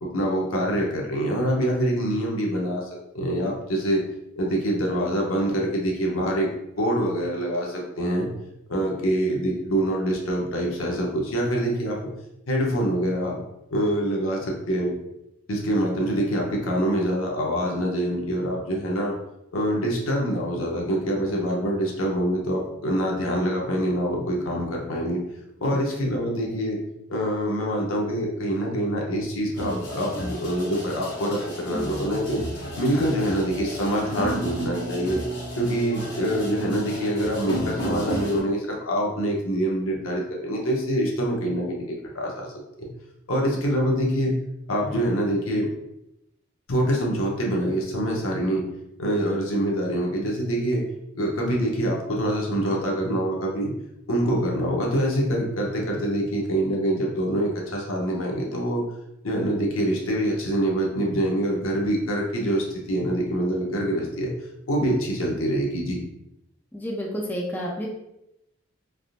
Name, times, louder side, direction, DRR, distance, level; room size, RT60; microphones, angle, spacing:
voice 1, 0.0-4.0 4.4-6.5 6.8-8.3 8.7-12.0 12.5-13.4 13.7-14.9 15.5-19.1 19.5-25.2 25.6-26.8 27.1-32.4 32.7-35.2 35.6-41.8 42.1-42.5 42.8-42.9 43.3-44.3 44.7-45.7 46.7-48.6 49.0-50.8 51.1-53.7 54.1-58.8 59.2-64.3 64.7-66.0, right 1 dB, 80° left, -1 dB, 0.7 m, -25 dB
sound 1, 29.5-38.4, equal, 55° left, 1.0 m, -33 dB
voice 2, 66.7-67.9, equal, 10° left, -3 dB, 0.4 m, -30 dB
3.5 x 2.5 x 2.4 m, 0.86 s
head